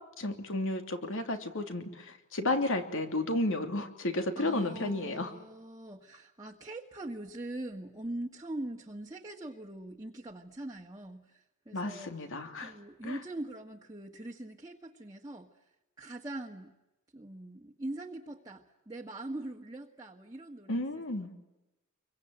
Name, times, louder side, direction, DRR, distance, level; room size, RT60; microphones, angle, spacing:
voice 1, 0.2-5.3 11.7-12.7 13.0-13.2 20.7-21.3, left 2 dB, 65° left, 6 dB, 3.1 m, -32 dB
voice 2, 4.4-12.1 12.6-15.5 16.0-16.7 17.1-20.8, right 1 dB, 20° right, 0 dB, 1.6 m, -42 dB
27.5 x 24.0 x 9.0 m, 1.0 s
head